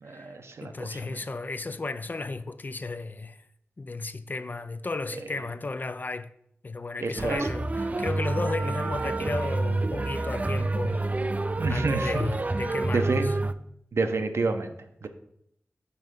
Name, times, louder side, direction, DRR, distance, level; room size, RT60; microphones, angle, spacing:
voice 1, 0.0-1.2 7.0-7.5 11.6-12.2 12.9-13.4 13.9-14.7 15.0-15.1, right 3 dB, 75° right, 0.8 m, -29 dB
voice 2, 0.6-3.4 3.8-6.3 6.6-11.0 11.7-13.3, left 3 dB, 45° left, 0.5 m, -34 dB
sound 1, 7.1-13.5, right 2 dB, 35° right, 0.4 m, -28 dB
5.5 x 5.4 x 6.2 m
wide cardioid pair, 75°, 5 cm